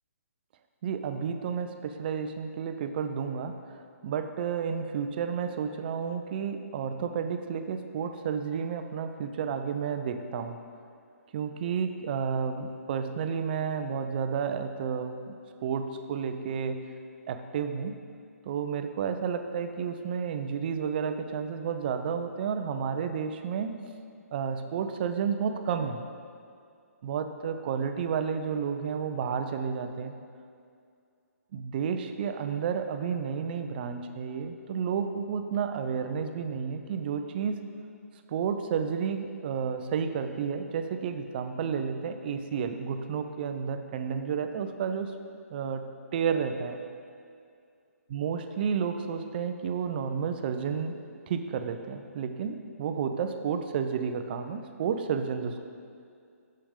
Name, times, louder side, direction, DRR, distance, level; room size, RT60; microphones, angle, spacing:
voice 1, 0.8-10.6 11.3-15.3 15.6-16.9 17.3-18.0 18.5-23.8 24.3-26.0 27.0-30.1 31.5-37.6 38.3-45.1 45.5-46.8 48.1-50.9 51.3-55.6, right 6 dB, 40° right, 8 dB, 0.4 m, -31 dB
7.0 x 6.6 x 3.6 m, 2.3 s
hypercardioid pair, 140°, 9 cm